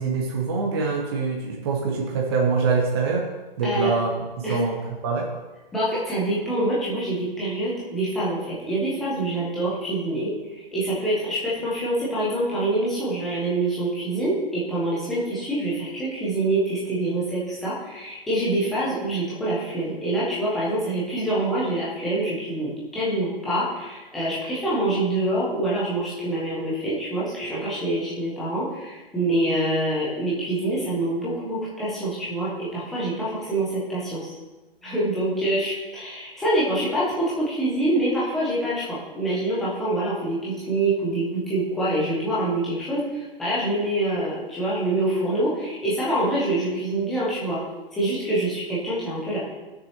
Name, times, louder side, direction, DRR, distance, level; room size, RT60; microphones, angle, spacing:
voice 1, 0.0-3.3 3.6-4.1 4.4-5.3, right 4 dB, 25° right, -1 dB, 0.8 m, -24 dB
voice 2, 5.7-34.3 34.8-47.6 47.9-49.4, right 1 dB, ahead, -8 dB, 0.4 m, -25 dB
16.0 x 6.3 x 2.9 m, 1.2 s
hypercardioid pair, 160°, 30 cm